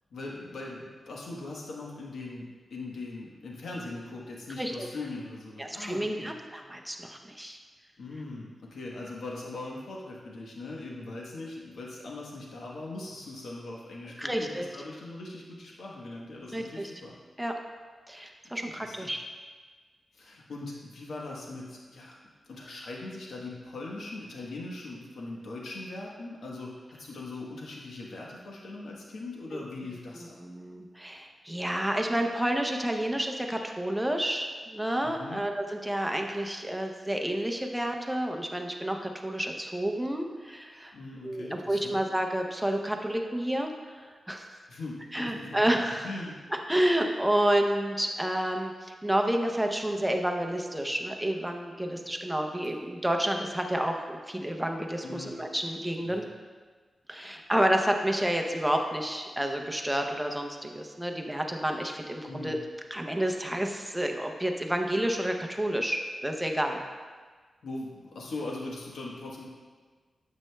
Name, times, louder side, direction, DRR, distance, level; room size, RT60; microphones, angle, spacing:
voice 1, 0.1-6.3 8.0-17.1 18.6-19.1 20.1-22.1 22.5-30.4 35.0-35.4 40.9-42.0 44.7-45.6 46.0-46.4 55.0-55.4 56.0-56.3 62.2-62.6 67.6-69.4, left 2 dB, 85° left, -3 dB, 1.1 m, -40 dB
voice 2, 5.6-7.6 14.2-14.7 16.5-16.9 17.4-17.5 18.1-19.2 29.5-29.6 30.1-40.9 41.2-44.6 45.1-46.1 46.7-56.2 57.1-62.6 62.9-66.8, right 1 dB, 5° right, 3 dB, 0.6 m, -30 dB
9.3 x 7.5 x 2.2 m, 1.4 s
wide cardioid pair, 150°, 0 cm